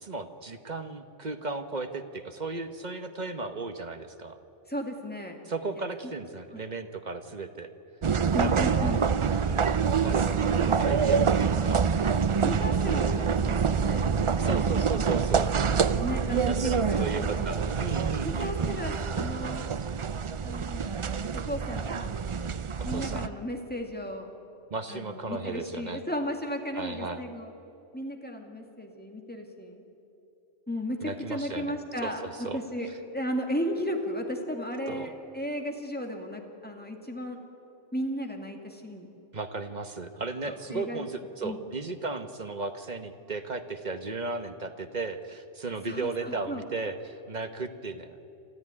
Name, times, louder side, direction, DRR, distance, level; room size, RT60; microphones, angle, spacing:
voice 1, 0.0-4.4 5.5-7.7 8.3-9.0 9.4-11.9 12.8-13.3 14.4-15.6 16.3-18.8 22.8-23.3 24.7-26.0 26.7-27.2 31.0-32.6 34.9-35.1 39.3-48.1, right 3 dB, 40° right, 8 dB, 1.1 m, -35 dB
voice 2, 4.7-5.4 6.5-6.6 8.3-9.0 12.4-14.2 16.0-17.5 18.2-19.6 20.4-20.9 21.5-22.1 22.8-24.3 24.9-27.5 27.9-29.8 30.7-37.4 37.9-39.1 40.5-41.1 41.4-41.6 45.8-46.6, equal, 5° left, 2 dB, 2.2 m, -35 dB
sound 1, 8.0-23.3, right 6 dB, 55° right, 0.3 m, -26 dB
27.0 x 14.0 x 9.7 m, 2.9 s
omnidirectional pair, 1.3 m